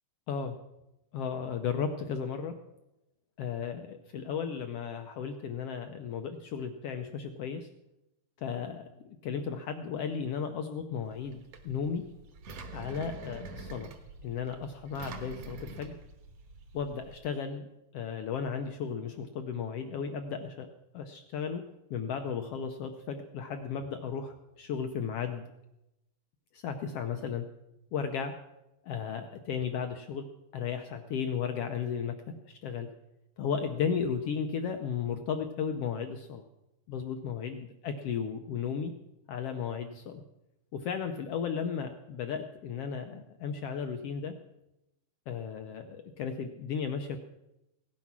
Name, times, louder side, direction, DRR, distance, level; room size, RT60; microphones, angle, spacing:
voice 1, 1.1-2.6 3.4-7.7 8.4-12.0 12.7-13.9 14.2-16.0 16.7-17.7 17.9-20.7 20.9-21.6 21.9-25.4 26.5-27.5 27.9-28.4 28.8-30.3 30.5-32.9 33.4-36.4 36.9-38.9 39.3-40.2 40.7-44.3 45.3-47.2, left 6 dB, 80° left, 6 dB, 1.3 m, -35 dB
Engine, 11.0-17.2, right 3 dB, 60° right, 2.4 m, -46 dB
17.0 x 9.8 x 6.0 m, 0.92 s
omnidirectional pair, 3.7 m